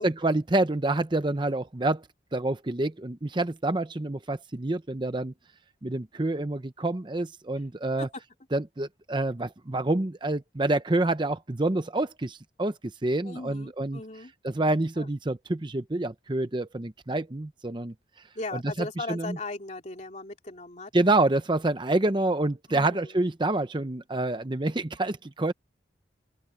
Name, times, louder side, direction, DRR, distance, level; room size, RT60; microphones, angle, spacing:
voice 1, 0.0-2.1 2.3-5.3 5.8-8.1 8.5-14.0 14.4-17.9 18.5-19.4 20.9-25.5, right 2 dB, 25° right, 0.7 m, -27 dB
voice 2, 13.2-14.3 14.7-15.1 18.3-20.9 22.7-23.1, left 2 dB, 40° left, 3.1 m, -38 dB
open air
head